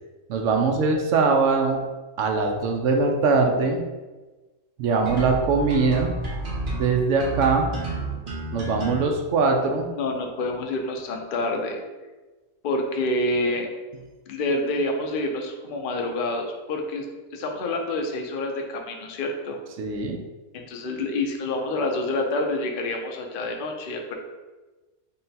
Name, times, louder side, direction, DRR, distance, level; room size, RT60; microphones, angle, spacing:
voice 1, 0.3-1.8 2.2-3.8 4.8-6.1 6.7-7.7 8.5-9.9 19.8-20.2, right 4 dB, 70° right, 3 dB, 0.8 m, -22 dB
sound 1, 5.1-9.1, right 2 dB, 40° right, 1.0 m, -30 dB
voice 2, 10.0-11.8 12.6-13.7 14.3-17.1 17.3-19.6 20.5-24.1, left 2 dB, 65° left, 3 dB, 0.5 m, -27 dB
3.7 x 2.2 x 4.0 m, 1.2 s
omnidirectional pair, 1.5 m